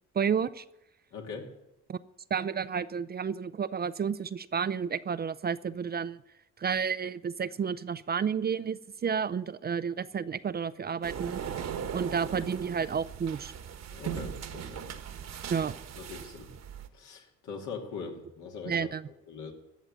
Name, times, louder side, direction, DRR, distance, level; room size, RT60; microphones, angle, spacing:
voice 1, 0.2-0.6 1.9-2.0 2.3-6.2 6.6-11.4 11.9-13.5 15.5-15.7 18.7-19.1, right 7 dB, 35° right, 15 dB, 0.5 m, -31 dB
voice 2, 1.1-1.5 13.9-14.9 16.0-16.5 16.9-19.5, left 5 dB, 75° left, 1 dB, 2.8 m, -42 dB
sound 1, 11.0-16.9, right 8 dB, 60° right, 1.3 m, -39 dB
13.5 x 7.3 x 8.9 m, 0.87 s
cardioid pair, 90°, 30 cm